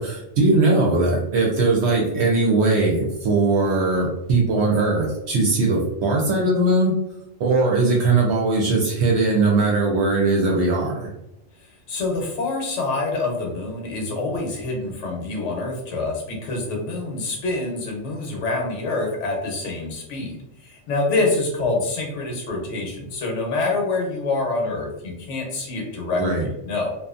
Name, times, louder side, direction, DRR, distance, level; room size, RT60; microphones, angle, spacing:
voice 1, 0.0-6.9 7.4-11.1 26.2-26.5, right 3 dB, 65° right, -2 dB, 0.8 m, -20 dB
voice 2, 11.9-27.0, left 3 dB, 75° left, 0 dB, 1.0 m, -26 dB
2.6 x 2.3 x 2.4 m, 0.87 s
omnidirectional pair, 1.3 m